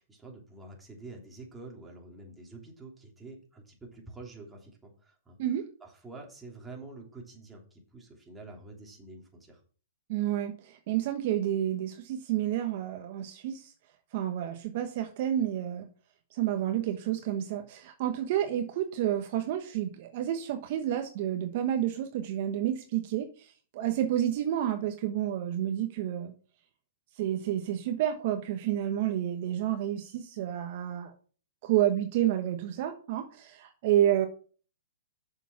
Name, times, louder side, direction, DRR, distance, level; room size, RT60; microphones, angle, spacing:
voice 1, 0.0-5.4 5.8-9.6, right 3 dB, 10° right, -1 dB, 3.0 m, -47 dB
voice 2, 10.1-13.7 14.1-15.9 16.3-26.3 27.1-31.1 31.6-34.3, right 11 dB, 45° right, 6 dB, 1.1 m, -30 dB
7.0 x 7.0 x 5.8 m, 0.42 s
hypercardioid pair, 140°, 0 cm